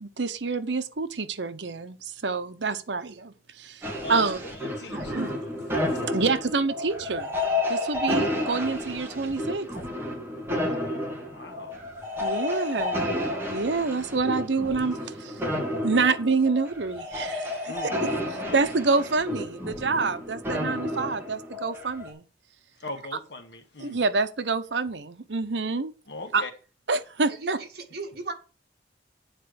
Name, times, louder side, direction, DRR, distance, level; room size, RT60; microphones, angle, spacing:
voice 1, 0.0-4.4 4.9-5.4 6.1-7.3 7.7-9.7 12.2-13.2 13.5-15.4 15.8-22.2 23.8-25.9 26.3-26.4 26.9-27.6, right 4 dB, 85° right, 1.0 m, -27 dB
sound 1, 3.8-22.1, left 1 dB, 15° right, 2.1 m, -31 dB
voice 2, 4.0-5.4 11.3-11.8 17.7-18.0 18.4-18.6 22.8-24.0 26.1-26.5, left 1 dB, 70° left, 1.6 m, -39 dB
voice 3, 27.3-28.3, right 4 dB, 60° right, 2.1 m, -37 dB
9.3 x 4.5 x 6.4 m
head